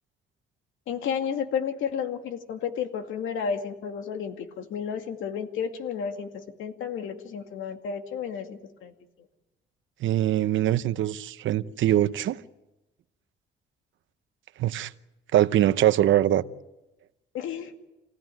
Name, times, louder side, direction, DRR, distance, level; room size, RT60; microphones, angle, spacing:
voice 1, 0.9-8.9 17.3-17.8, left 7 dB, 80° left, 2.4 m, -32 dB
voice 2, 10.0-12.4 14.6-14.9 15.3-16.4, right 12 dB, 75° right, 0.9 m, -22 dB
27.5 x 16.5 x 9.2 m
cardioid pair, 90°, 20 cm